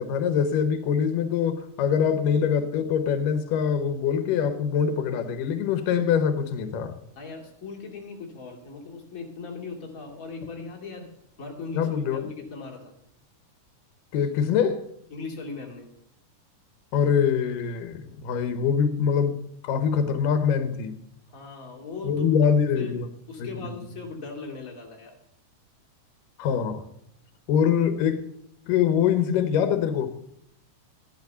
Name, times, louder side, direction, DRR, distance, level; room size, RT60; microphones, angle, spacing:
voice 1, 0.0-7.0 11.7-12.2 14.1-14.9 16.9-19.4 19.6-21.0 22.0-23.1 23.4-23.8 26.4-26.8 27.5-28.2 28.7-30.1, left 7 dB, 85° left, 2.6 m, -24 dB
voice 2, 7.1-11.1 11.4-12.9 15.1-15.9 21.3-22.3 22.7-23.0 23.3-25.2, left 4 dB, 25° left, 2.6 m, -38 dB
14.5 x 11.0 x 5.6 m
omnidirectional pair, 3.7 m